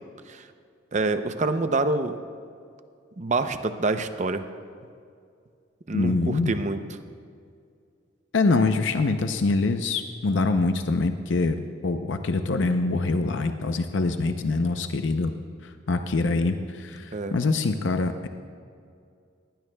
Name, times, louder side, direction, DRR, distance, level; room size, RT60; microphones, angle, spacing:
voice 1, 0.9-2.1 3.2-4.4 5.9-6.8 17.1-17.3, right 3 dB, 40° right, 9 dB, 0.6 m, -26 dB
voice 2, 5.9-6.6 8.3-11.6 11.8-15.3 15.6-18.3, left 3 dB, 75° left, 7 dB, 0.6 m, -24 dB
19.5 x 16.0 x 2.3 m, 2.3 s
head